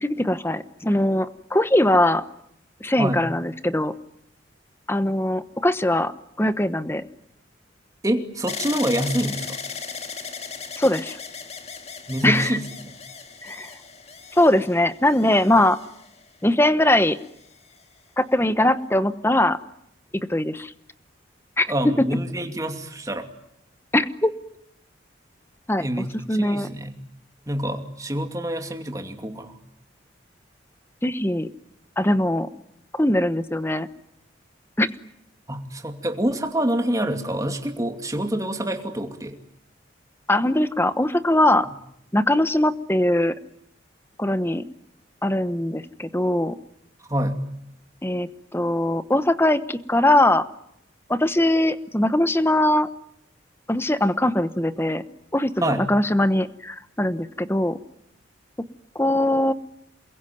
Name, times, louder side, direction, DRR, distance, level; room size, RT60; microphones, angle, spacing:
voice 1, 0.0-2.2 2.8-3.9 4.9-6.1 6.4-7.0 10.8-11.2 12.2-12.6 13.4-13.7 14.3-15.8 16.4-17.2 18.2-19.6 20.3-20.7 21.6-21.9 23.9-24.3 25.7-26.7 31.0-31.5 32.0-32.5 32.9-33.9 34.8-34.9 40.3-41.7 42.1-43.3 44.2-44.6 45.2-46.5 48.0-50.4 51.1-52.9 53.7-55.0 55.3-57.8 58.9-59.5, left 1 dB, 10° left, 13 dB, 1.1 m, -21 dB
voice 2, 3.0-3.3 8.0-9.6 12.1-12.9 21.7-23.3 25.8-26.9 27.5-29.5 35.5-39.4 47.1-47.4 55.6-55.9, right 1 dB, 15° right, 5 dB, 2.6 m, -26 dB
sound 1, 8.5-16.5 17.2-17.8, left 5 dB, 35° left, 1.9 m, -37 dB
28.5 x 22.0 x 9.3 m, 0.76 s
head